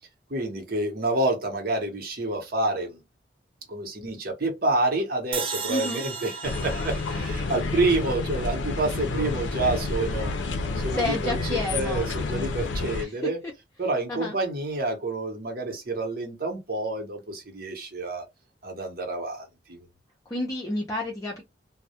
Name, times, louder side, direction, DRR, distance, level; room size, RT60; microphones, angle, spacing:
voice 1, 0.3-3.0 3.7-10.3 10.8-13.4 13.8-18.3 18.6-19.8, right 2 dB, 55° right, 0.9 m, -28 dB
sound 1, 5.3-8.5, right 5 dB, 30° right, 0.4 m, -36 dB
voice 2, 5.7-6.0 10.9-12.1 13.0-13.3 14.1-14.4 20.3-21.4, left 2 dB, 20° left, 0.5 m, -30 dB
sound 2, 6.4-13.0, left 3 dB, 85° left, 0.5 m, -29 dB
2.2 x 2.0 x 2.7 m
head